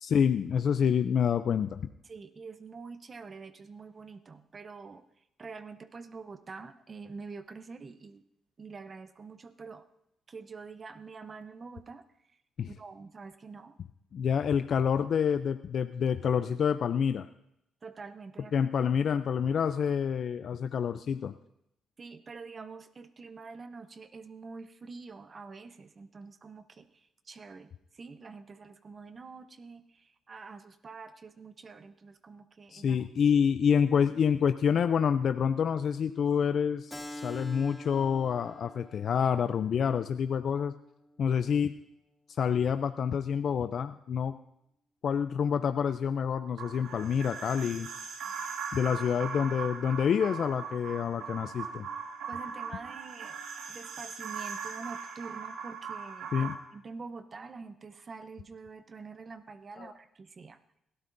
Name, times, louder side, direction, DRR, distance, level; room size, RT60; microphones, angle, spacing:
voice 1, 0.0-1.8 12.6-12.7 14.1-17.3 18.5-21.3 32.7-40.7 41.2-41.7 42.4-44.4 45.0-47.9 48.7-51.9 56.3-56.5 59.8-59.9, left 7 dB, 65° left, 10 dB, 0.4 m, -27 dB
voice 2, 2.0-8.2 8.6-9.9 10.3-12.0 12.6-13.8 17.8-18.5 22.0-33.1 52.3-53.4 53.7-60.6, right 4 dB, 45° right, 11 dB, 0.7 m, -46 dB
Keyboard (musical), 36.9-42.0, equal, 10° left, 2.3 m, -47 dB
sound 1, 46.6-56.5, right 6 dB, 80° right, 1.7 m, -39 dB
20.5 x 13.0 x 2.6 m, 0.80 s
supercardioid pair, 60°, 0 cm